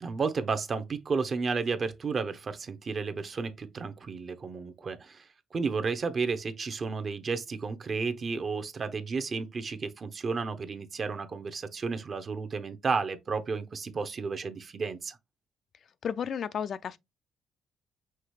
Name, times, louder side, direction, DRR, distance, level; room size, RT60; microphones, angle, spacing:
voice 1, 0.0-15.2, right 4 dB, 45° right, 0.7 m, -32 dB
voice 2, 16.0-17.0, left 8 dB, 60° left, 0.4 m, -32 dB
5.8 x 2.8 x 3.1 m
cardioid pair, 90°, 0 cm